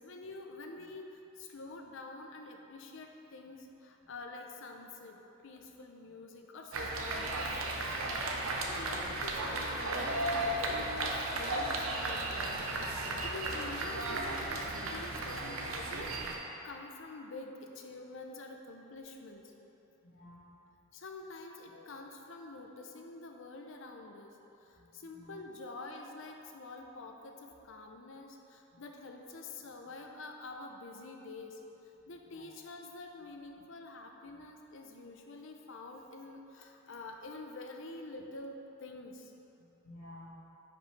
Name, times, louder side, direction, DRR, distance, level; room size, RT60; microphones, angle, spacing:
voice 1, 0.0-12.3 12.8-19.4 20.9-31.6 32.1-39.3, left 3 dB, 65° left, 3 dB, 0.7 m, -47 dB
sound 1, 6.7-16.3, right 2 dB, 80° right, 0.8 m, -35 dB
voice 2, 8.7-9.1 12.8-13.2 17.6-17.8 20.0-20.4 21.7-21.9 24.8-25.4 32.3-32.4 39.6-40.3, left 1 dB, 85° left, -10 dB, 1.5 m, -54 dB
10.0 x 5.2 x 3.3 m, 3.0 s
head